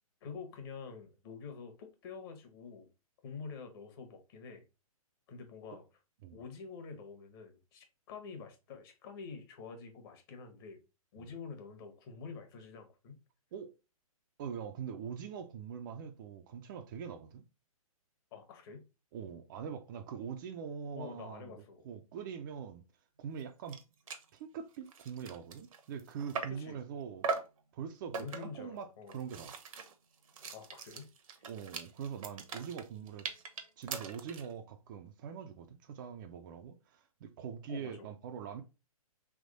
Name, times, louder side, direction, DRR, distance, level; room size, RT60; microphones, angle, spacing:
voice 1, 0.2-2.9 3.2-4.6 5.3-5.8 6.3-10.8 11.1-13.2 18.3-18.8 20.9-21.9 26.5-26.8 28.1-29.2 30.5-31.1 37.7-38.1, left 5 dB, 40° left, 1.2 m, -47 dB
voice 2, 14.4-17.4 19.1-22.8 23.2-23.8 24.3-27.3 27.7-29.5 31.5-33.3 33.8-38.6, right 7 dB, 35° right, 0.5 m, -43 dB
sound 1, 23.4-23.5 23.7-23.8 24.1-24.3 24.7-26.7 27.2-27.6 28.1-28.6 29.1-34.5, right 5 dB, 65° right, 0.9 m, -41 dB
3.5 x 3.0 x 3.9 m
figure-of-eight pair, 130°, 19 cm